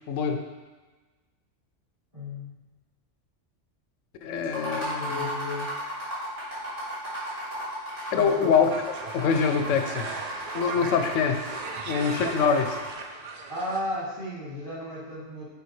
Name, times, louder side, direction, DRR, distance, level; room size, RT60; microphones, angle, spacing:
voice 1, 0.1-0.4 4.2-5.3 8.1-8.7 9.1-10.2 10.5-11.4 11.9-12.8, left 6 dB, 85° left, 6 dB, 0.9 m, -24 dB
voice 2, 2.1-2.7 5.0-5.7 8.1-8.5 13.5-15.4, left 1 dB, 30° right, -10 dB, 2.2 m, -34 dB
sound 1, 4.4-13.0, right 1 dB, 50° right, 2.5 m, -35 dB
sound 2, 8.7-13.8, right 4 dB, 70° right, 0.4 m, -37 dB
6.9 x 4.7 x 3.2 m, 1.3 s
omnidirectional pair, 1.3 m